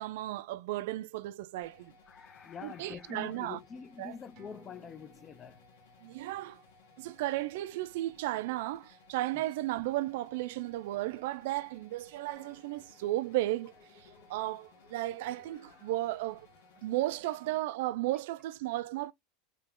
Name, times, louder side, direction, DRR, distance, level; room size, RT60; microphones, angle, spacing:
voice 1, 0.0-1.9 2.6-3.6 4.0-4.2 6.0-6.6 7.0-16.5 16.8-19.1, right 16 dB, 70° right, 0.3 m, -34 dB
sound 1, 1.6-17.6, left 3 dB, 75° left, 1.4 m, -61 dB
voice 2, 2.1-5.6, left 7 dB, 25° left, 0.4 m, -45 dB
sound 2, 4.4-9.3 9.7-9.8, right 3 dB, 45° right, 1.1 m, -64 dB
sound 3, 12.3-17.3, left 4 dB, 60° left, 1.5 m, -63 dB
3.2 x 2.9 x 3.6 m
supercardioid pair, 150°, 0 cm